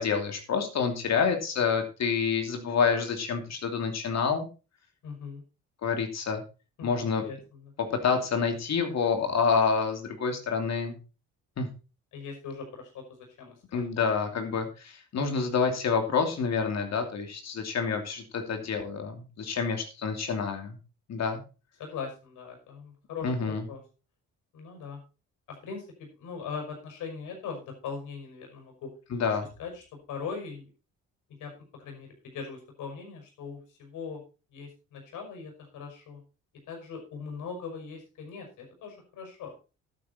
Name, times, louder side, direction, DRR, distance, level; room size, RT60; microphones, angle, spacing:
voice 1, 0.0-4.5 5.8-6.4 6.8-7.2 7.9-11.0 11.6-11.7 13.7-20.8 21.1-21.4 23.2-23.6 29.1-29.5, left 5 dB, 60° left, 5 dB, 2.9 m, -28 dB
voice 2, 5.0-5.4 6.8-7.7 12.1-13.8 21.8-23.8 24.5-25.0 25.5-25.9 26.2-28.9 29.6-29.8 30.1-30.7 31.4-31.5 31.8-34.2 34.5-36.2 36.7-39.5, left 5 dB, 80° left, 3 dB, 5.8 m, -40 dB
11.0 x 9.8 x 4.3 m, 0.32 s
cardioid pair, 90°, 30 cm